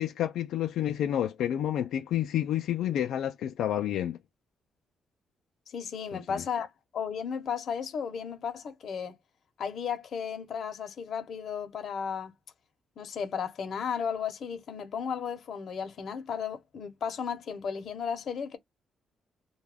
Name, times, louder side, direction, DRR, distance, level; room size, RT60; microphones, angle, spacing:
voice 1, 0.0-4.2 6.1-6.4, left 11 dB, 85° left, 0.3 m, -29 dB
voice 2, 5.7-9.2 9.6-12.3 13.0-18.6, left 7 dB, 55° left, 0.7 m, -34 dB
2.2 x 2.2 x 3.3 m
cardioid pair, 130°, 0 cm